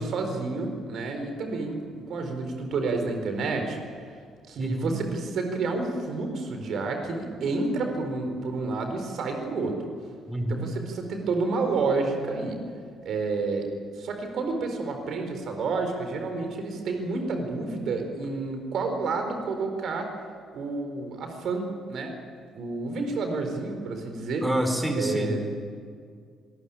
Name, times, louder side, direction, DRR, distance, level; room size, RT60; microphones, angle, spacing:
voice 1, 0.0-3.8 4.5-9.7 10.5-12.6 13.0-13.7 14.0-20.1 20.5-22.1 22.5-24.4 25.0-25.4, right 3 dB, 50° right, 5 dB, 4.4 m, -29 dB
voice 2, 4.6-4.9 10.3-10.7 24.4-25.4, right 1 dB, 10° right, 5 dB, 4.9 m, -27 dB
25.5 x 20.0 x 8.9 m, 2.1 s
figure-of-eight pair, 45°, 0 cm